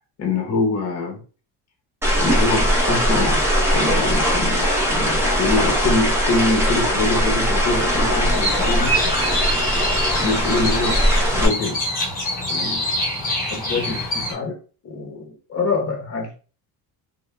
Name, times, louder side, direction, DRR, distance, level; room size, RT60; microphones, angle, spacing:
voice 1, 0.2-1.2 2.2-3.4 3.7-9.1 10.2-11.0 11.3-11.8 12.5-12.9 13.4-14.6 14.8-16.3, left 3 dB, 40° left, 0.8 m, -24 dB
sound 1, 2.0-11.5, equal, 5° right, 0.5 m, -20 dB
sound 2, 8.3-14.3, equal, 20° left, 1.1 m, -25 dB
2.2 x 2.1 x 3.0 m
cardioid pair, 160°, 40 cm